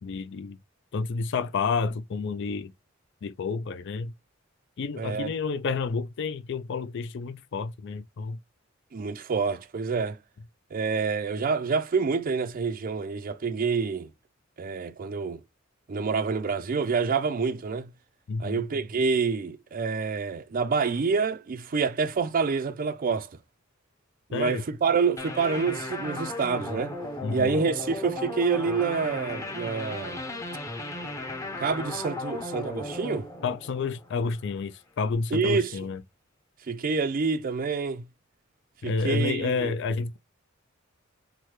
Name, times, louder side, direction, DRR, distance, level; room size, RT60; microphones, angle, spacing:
voice 1, 0.0-0.6 0.9-2.7 3.2-4.1 4.8-8.4 18.3-18.7 24.3-24.6 27.2-27.6 33.4-36.0 38.8-40.2, left 4 dB, 60° left, 0.4 m, -30 dB
voice 2, 5.0-5.3 8.9-10.2 10.7-14.1 14.6-15.4 15.9-17.9 18.4-23.3 24.3-26.9 27.3-30.2 31.6-33.3 35.3-35.8 36.7-38.1 38.8-39.7, right 5 dB, 45° right, 0.4 m, -27 dB
sound 1, 25.2-34.5, left 2 dB, 15° left, 0.7 m, -36 dB
5.7 x 2.2 x 3.1 m
head